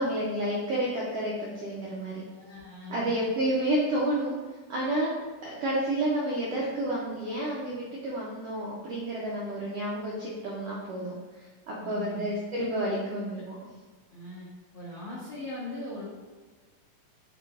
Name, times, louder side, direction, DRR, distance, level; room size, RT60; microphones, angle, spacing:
voice 1, 0.0-2.2 2.9-4.3 4.7-5.1 5.4-13.5, right 1 dB, 90° right, -5 dB, 1.3 m, -30 dB
voice 2, 2.3-3.1 11.8-12.3 14.1-14.5 14.7-16.1, left 1 dB, 90° left, -8 dB, 1.0 m, -40 dB
7.1 x 2.9 x 2.4 m, 1.4 s
omnidirectional pair, 3.6 m